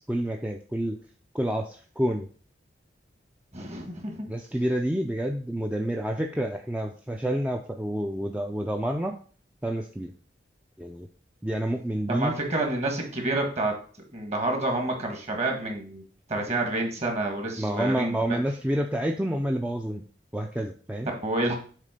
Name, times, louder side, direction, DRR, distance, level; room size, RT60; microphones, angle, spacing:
voice 1, 0.1-1.0 1.3-2.3 4.3-9.2 9.6-10.1 10.8-11.1 11.4-12.4 17.6-20.0 20.3-21.1, right 1 dB, 10° right, 2 dB, 0.4 m, -28 dB
voice 2, 3.5-4.3 12.1-13.8 14.1-16.0 16.3-18.4 21.1-21.6, right 2 dB, 40° right, 2 dB, 1.7 m, -28 dB
7.5 x 3.7 x 5.0 m, 0.42 s
head